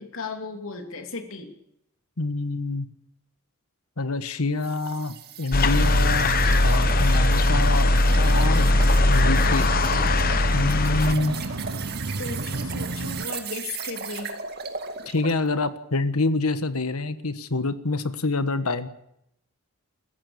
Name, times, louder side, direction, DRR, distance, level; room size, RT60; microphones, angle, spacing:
voice 1, 0.0-1.5 12.2-14.4, left 3 dB, 70° left, 5 dB, 3.0 m, -35 dB
voice 2, 2.2-2.9 4.0-6.3 6.6-8.7 9.0-9.7 10.5-11.4 15.1-18.9, left 3 dB, 85° left, 11 dB, 1.4 m, -26 dB
sound 1, 4.6-15.4, right 5 dB, 45° right, 2.1 m, -37 dB
sound 2, 5.5-11.1, left 2 dB, 40° left, 1.0 m, -20 dB
sound 3, 5.8-13.3, right 2 dB, 60° right, 1.0 m, -32 dB
26.5 x 14.5 x 7.1 m, 0.78 s
head